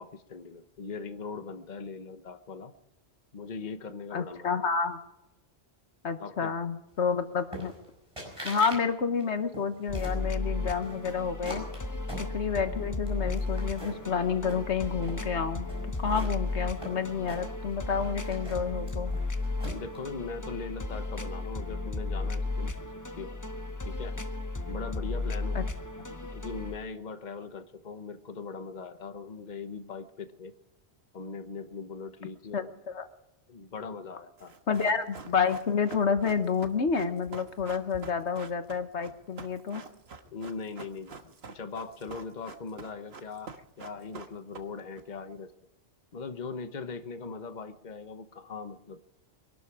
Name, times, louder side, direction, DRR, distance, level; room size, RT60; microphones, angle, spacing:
voice 1, 0.0-2.7 3.3-4.6 6.2-6.5 19.7-22.8 23.2-23.3 23.8-24.2 24.7-25.6 26.1-30.5 31.1-32.7 33.5-34.5 40.2-45.5 46.1-49.0, left 4 dB, 45° left, 9 dB, 1.2 m, -40 dB
voice 2, 4.1-5.0 6.0-7.7 8.4-11.6 12.2-15.7 16.0-19.1 25.5-25.6 32.5-33.1 34.7-39.8, left 6 dB, 80° left, 9 dB, 1.5 m, -29 dB
sound 1, 7.5-7.9 8.2-8.8 9.1-10.2 10.8-12.7 13.1-14.1 14.4-15.2 15.7-17.7 18.0-20.0, right 1 dB, 25° right, 5.9 m, -42 dB
sound 2, 9.9-26.8, left 2 dB, 20° left, 0.8 m, -34 dB
Run, 34.4-45.0 45.3-45.4, right 4 dB, 65° right, 1.5 m, -46 dB
23.5 x 12.0 x 4.9 m, 0.91 s
omnidirectional pair, 1.1 m